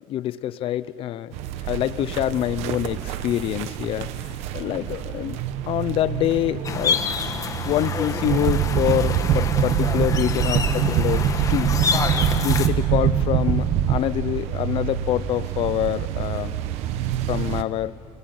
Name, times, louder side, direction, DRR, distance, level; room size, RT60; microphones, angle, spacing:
voice 1, 0.1-1.3 1.6-5.4 5.7-7.0 7.6-11.8 12.0-16.5 17.3-17.9, left 12 dB, 60° left, 16 dB, 0.7 m, -26 dB
sound 1, 1.3-17.6, right 11 dB, 90° right, 1.1 m, -31 dB
sound 2, 6.6-12.7, left 5 dB, 30° left, 1.5 m, -28 dB
sound 3, 8.3-14.0, right 8 dB, 65° right, 1.2 m, -22 dB
30.0 x 21.0 x 9.5 m, 2.8 s
cardioid pair, 140°, 11 cm